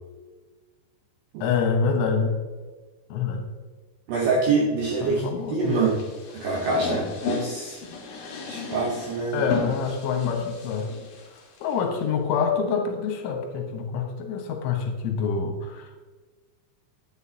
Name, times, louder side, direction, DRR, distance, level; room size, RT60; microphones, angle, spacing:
voice 1, 1.4-2.4 3.1-3.5 5.0-5.8 9.3-10.9 11.3-16.0, left 5 dB, 80° left, 3 dB, 3.4 m, -26 dB
voice 2, 4.1-6.0 6.3-7.8 8.1-9.4, right 4 dB, 75° right, -1 dB, 2.2 m, -26 dB
sound 1, 5.6-11.7, left 4 dB, 60° left, 2.9 m, -34 dB
10.5 x 9.8 x 2.8 m, 1.3 s
omnidirectional pair, 5.6 m